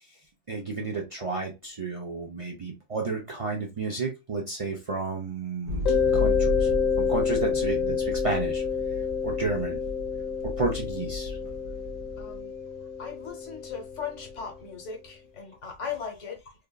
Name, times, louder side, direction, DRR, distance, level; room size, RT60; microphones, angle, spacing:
voice 1, 0.5-5.9 6.1-6.7 7.0-8.6 9.2-9.8 10.4-11.4, right 3 dB, 60° right, 0.3 m, -31 dB
sound 1, 5.6-12.4, left 1 dB, 85° right, 1.2 m, -34 dB
Mallet percussion, 5.9-14.5, left 6 dB, 45° left, 0.9 m, -28 dB
voice 2, 12.2-12.5 13.0-16.5, left 6 dB, 65° left, 1.2 m, -38 dB
3.4 x 2.4 x 2.2 m
omnidirectional pair, 1.4 m